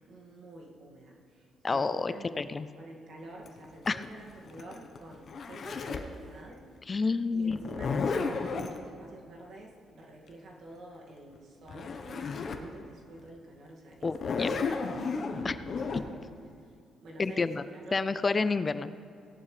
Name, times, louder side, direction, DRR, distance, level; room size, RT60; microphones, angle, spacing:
voice 1, 0.1-2.5 2.8-7.0 7.3-14.2 14.4-15.3 15.8-16.0 16.6-16.7 17.0-18.0, right 1 dB, 65° right, -2 dB, 2.2 m, -49 dB
voice 2, 1.6-2.7 3.9-4.0 6.9-7.6 14.0-14.5 15.4-15.6 17.2-17.6 17.9-18.9, left 4 dB, 30° left, 13 dB, 0.4 m, -29 dB
Zipper (clothing), 3.5-6.2 7.5-8.8 11.4-11.5 11.7-12.7 13.2-13.3 14.0-16.0, left 4 dB, 50° left, 1.0 m, -33 dB
18.0 x 11.0 x 3.3 m, 2.4 s
cardioid pair, 90°, 0 cm